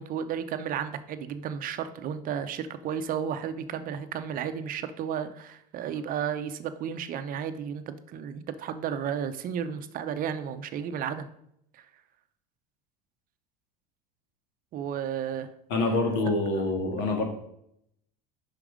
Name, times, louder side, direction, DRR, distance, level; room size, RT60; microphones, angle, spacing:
voice 1, 0.0-11.3 11.7-11.9 14.7-15.5 16.5-16.6, right 8 dB, 45° right, 10 dB, 0.6 m, -33 dB
voice 2, 15.7-17.2, left 2 dB, 70° left, 3 dB, 1.8 m, -26 dB
5.9 x 5.0 x 4.9 m, 0.74 s
supercardioid pair, 110°, 20 cm